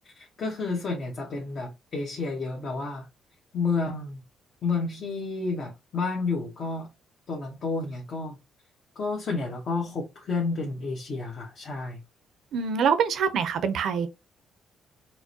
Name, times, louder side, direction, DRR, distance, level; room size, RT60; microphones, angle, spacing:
voice 1, 0.0-3.1 3.5-4.2 4.6-6.9 7.3-8.4 8.9-12.0, left 4 dB, 55° left, 1.1 m, -30 dB
voice 2, 12.5-14.1, right 6 dB, 70° right, 0.6 m, -25 dB
4.5 x 2.2 x 2.8 m
cardioid pair, 90°, 0 cm